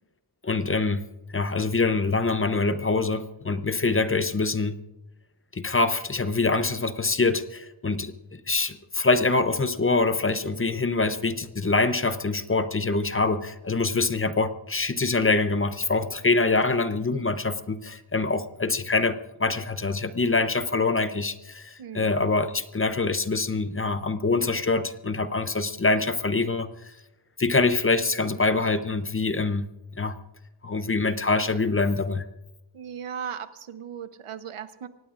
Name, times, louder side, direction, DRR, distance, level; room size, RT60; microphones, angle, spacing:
voice 1, 0.4-1.0 1.3-4.8 5.5-8.1 8.5-26.9 27.4-29.7 30.0-30.2 30.6-32.3, left 3 dB, 25° left, 11 dB, 0.6 m, -25 dB
voice 2, 21.8-22.1 32.7-34.9, right 8 dB, 90° right, 11 dB, 1.0 m, -37 dB
24.5 x 18.5 x 2.5 m, 0.98 s
wide cardioid pair, 180°, 50 cm